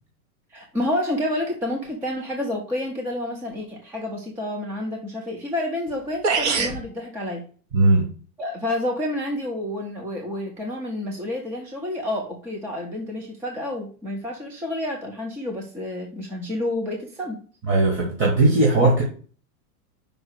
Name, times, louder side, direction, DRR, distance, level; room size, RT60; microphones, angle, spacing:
voice 1, 0.5-7.4 8.4-17.4, left 1 dB, 5° right, 2 dB, 0.4 m, -29 dB
sound 1, 5.9-6.0 6.2-6.8, right 4 dB, 45° right, 1.2 m, -22 dB
voice 2, 7.7-8.1 17.6-19.0, right 2 dB, 25° right, -3 dB, 1.9 m, -18 dB
5.3 x 4.9 x 6.3 m, 0.41 s
supercardioid pair, 155°, 46 cm